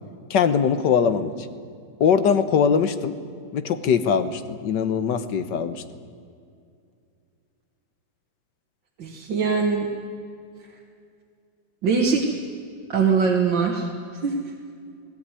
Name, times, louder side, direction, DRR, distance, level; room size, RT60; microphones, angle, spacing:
voice 1, 0.3-1.3 2.0-3.1 3.5-5.8, left 7 dB, 70° left, 11 dB, 1.6 m, -21 dB
voice 2, 9.0-9.9 11.8-12.3 12.9-14.4, right 5 dB, 75° right, 0 dB, 2.4 m, -22 dB
19.5 x 17.5 x 9.8 m, 2.3 s
omnidirectional pair, 2.0 m